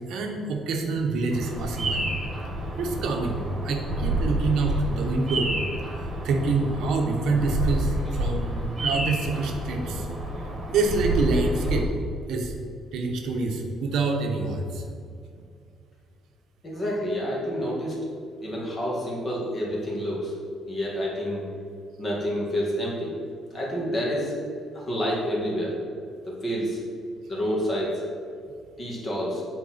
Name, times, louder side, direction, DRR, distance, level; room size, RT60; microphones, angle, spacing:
voice 1, 0.1-2.1 2.8-5.5 6.0-10.1 10.7-11.9 12.3-12.5 12.9-14.8, right 3 dB, 75° right, 2 dB, 0.9 m, -26 dB
Bird vocalization bird call bird song, 1.3-11.8, right 1 dB, 20° right, 1.7 m, -29 dB
voice 2, 16.6-18.0 18.4-20.4 20.7-21.4 22.0-23.1 23.5-24.3 24.7-25.7 26.2-26.8 27.3-28.0 28.8-29.4, equal, 25° left, -4 dB, 1.7 m, -28 dB
8.5 x 4.5 x 4.2 m, 2.3 s
cardioid pair, 155°, 0 cm